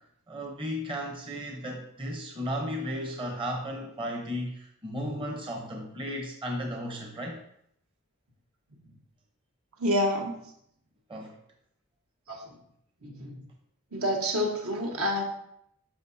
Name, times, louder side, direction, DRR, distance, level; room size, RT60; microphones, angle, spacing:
voice 1, 0.3-7.4 11.1-11.4, equal, 25° right, 1 dB, 0.8 m, -34 dB
voice 2, 9.8-10.3 12.3-12.4 13.0-13.4 13.9-15.2, equal, 70° right, 1 dB, 1.4 m, -28 dB
11.0 x 5.9 x 2.7 m, 0.73 s
head